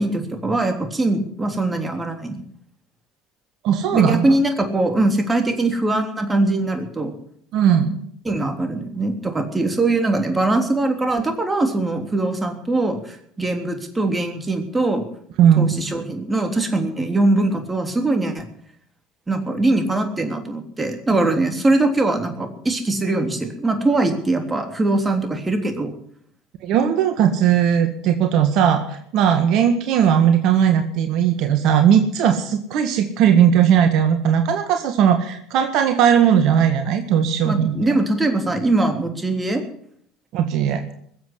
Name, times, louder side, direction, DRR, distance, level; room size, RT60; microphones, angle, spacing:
voice 1, 0.0-2.4 3.9-7.1 8.3-15.0 15.6-18.5 19.3-25.9 37.4-39.6, right 2 dB, 15° right, 5 dB, 3.4 m, -21 dB
voice 2, 3.6-4.2 7.5-8.1 15.4-15.7 21.1-21.2 26.6-37.7 40.3-40.8, right 8 dB, 60° right, 7 dB, 1.7 m, -18 dB
21.0 x 7.9 x 8.3 m, 0.66 s
hypercardioid pair, 75°, 0 cm